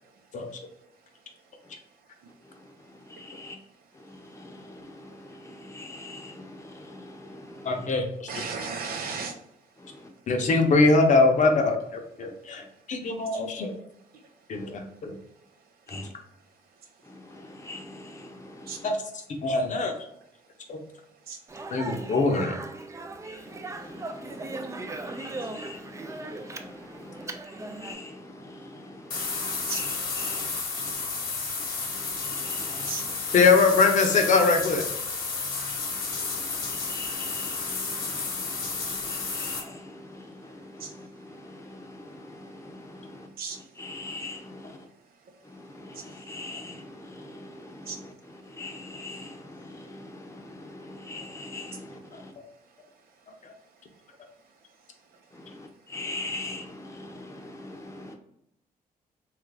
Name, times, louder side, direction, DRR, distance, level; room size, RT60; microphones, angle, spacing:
voice 1, 2.4-3.6 3.9-7.9 9.8-10.1 10.4-10.5 14.5-14.7 15.9-16.1 17.0-18.9 21.8-22.0 23.2-31.0 31.6-33.4 35.8-44.9 45.4-52.3 55.3-58.1, left 2 dB, 20° left, 2 dB, 0.7 m, -43 dB
voice 2, 7.6-8.4 10.3-12.6 12.9-13.7 14.5-15.1 18.8-18.9 19.4-19.9 20.7-20.8 21.7-22.5 33.3-34.8 53.4-53.5, left 3 dB, 55° left, 4 dB, 0.7 m, -22 dB
voice 3, 8.3-9.3 18.7-18.8 21.3-21.4 29.7-29.8 32.9-33.0 40.8-40.9 43.4-43.6 47.9-48.0, right 5 dB, 80° right, 3 dB, 0.7 m, -34 dB
Speech, 21.5-28.0, right 2 dB, 20° right, 0.3 m, -38 dB
sound 1, 29.1-39.6, left 4 dB, 70° left, 1.1 m, -32 dB
3.1 x 2.4 x 3.3 m, 0.79 s
cardioid pair, 90°, 15 cm